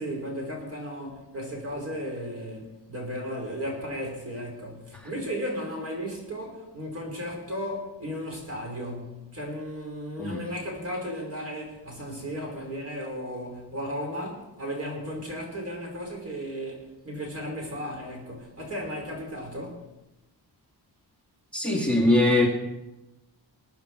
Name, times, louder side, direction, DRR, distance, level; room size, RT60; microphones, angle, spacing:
voice 1, 0.0-19.8, equal, 35° right, -1 dB, 5.4 m, -35 dB
voice 2, 21.5-22.5, left 2 dB, 5° left, -1 dB, 2.1 m, -22 dB
21.5 x 9.3 x 4.9 m, 0.98 s
wide cardioid pair, 155°, 41 cm